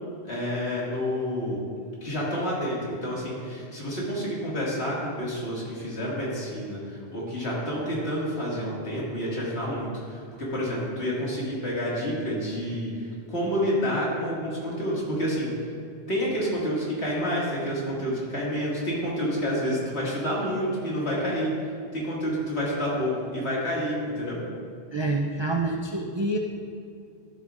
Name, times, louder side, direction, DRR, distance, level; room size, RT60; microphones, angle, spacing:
voice 1, 0.2-1.6 2.0-15.5 16.1-21.5 21.9-24.4, equal, 75° left, -6 dB, 2.3 m, -29 dB
voice 2, 24.9-26.4, right 2 dB, 45° right, 0 dB, 0.4 m, -27 dB
12.0 x 7.6 x 2.4 m, 2.4 s
omnidirectional pair, 1.1 m